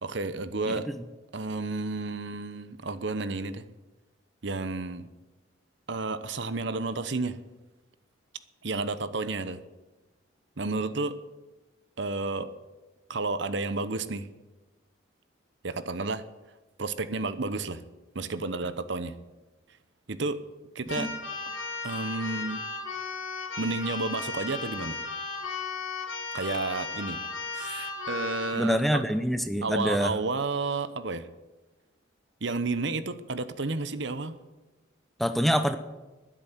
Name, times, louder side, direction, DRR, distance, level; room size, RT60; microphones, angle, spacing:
voice 1, 0.0-0.9 1.3-3.6 4.4-5.1 5.9-7.4 8.6-9.6 10.6-11.2 12.0-12.5 13.1-14.3 15.6-16.2 16.8-17.8 18.1-19.1 20.1-20.4 20.7-21.1 21.5-21.6 21.8-22.6 23.6-25.0 26.3-27.2 27.5-29.0 29.6-31.3 32.4-34.3, right 3 dB, 60° right, 13 dB, 0.9 m, -31 dB
Keyboard (musical), 20.9-28.6, left 4 dB, 80° left, 2.7 m, -35 dB
voice 2, 28.5-30.1 35.2-35.8, equal, ahead, 9 dB, 0.7 m, -25 dB
12.5 x 10.5 x 9.2 m, 1.2 s
head